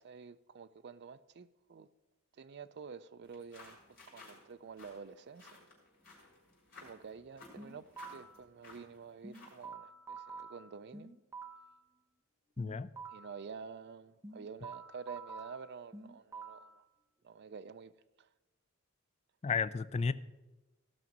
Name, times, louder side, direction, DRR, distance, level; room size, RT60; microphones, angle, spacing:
voice 1, 0.0-1.9 2.4-3.8 4.1-5.5 6.8-11.1 13.1-16.8 17.2-17.9 18.2-18.3, right 5 dB, 50° right, 0.4 m, -49 dB
sound 1, 3.2-9.7, left 3 dB, 45° left, 4.9 m, -57 dB
sound 2, 7.6-8.4 9.2-11.8 12.6-13.4 14.2-16.8, right 4 dB, 15° right, 0.9 m, -48 dB
voice 2, 12.6-12.9 19.4-20.1, left 5 dB, 30° left, 0.4 m, -32 dB
16.0 x 6.1 x 5.3 m
head